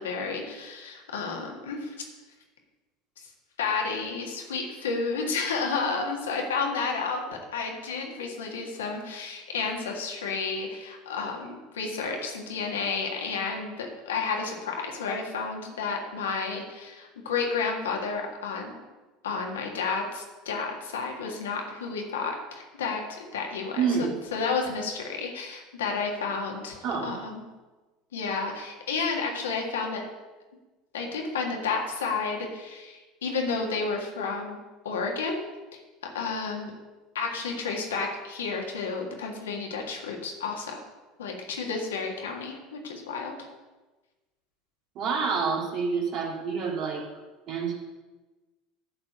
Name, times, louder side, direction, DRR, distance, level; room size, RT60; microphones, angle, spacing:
voice 1, 0.0-1.9 3.2-3.3 3.6-18.7 19.2-23.8 24.3-27.4 28.1-30.0 30.9-34.6 34.8-36.7 37.1-40.9 41.2-43.5, left 4 dB, 80° left, 1 dB, 1.7 m, -31 dB
voice 2, 23.8-24.2 26.8-27.1 44.9-47.0 47.5-47.7, right 5 dB, 50° right, -2 dB, 2.7 m, -28 dB
11.0 x 4.4 x 6.7 m, 1.2 s
hypercardioid pair, 75°, 0 cm